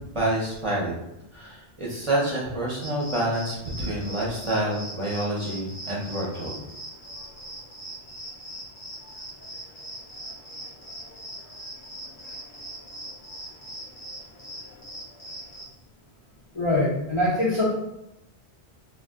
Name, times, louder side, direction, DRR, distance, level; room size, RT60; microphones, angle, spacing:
voice 1, 0.1-0.9 1.3-6.6, right 1 dB, 35° right, -6 dB, 0.7 m, -28 dB
sound 1, 2.8-15.7, right 1 dB, 85° left, 1.1 m, -41 dB
voice 2, 16.5-17.6, left 1 dB, 40° left, -6 dB, 0.4 m, -23 dB
2.4 x 2.1 x 3.5 m, 0.86 s
omnidirectional pair, 1.1 m